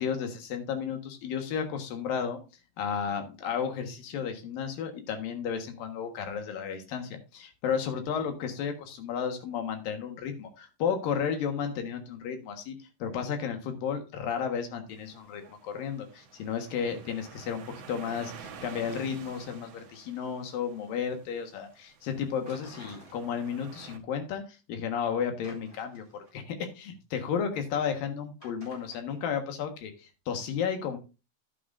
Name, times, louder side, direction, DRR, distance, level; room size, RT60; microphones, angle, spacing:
voice 1, 0.0-2.4 2.8-17.6 17.9-24.4 24.7-31.0, left 7 dB, 85° left, 6 dB, 3.3 m, -33 dB
sound 1, 14.9-24.0, right 6 dB, 60° right, 1.9 m, -50 dB
sound 2, 22.5-23.8 24.1-24.2 25.4-26.4 28.4-29.0, equal, 15° left, 6.9 m, -51 dB
11.0 x 9.5 x 2.6 m, 0.29 s
omnidirectional pair, 3.9 m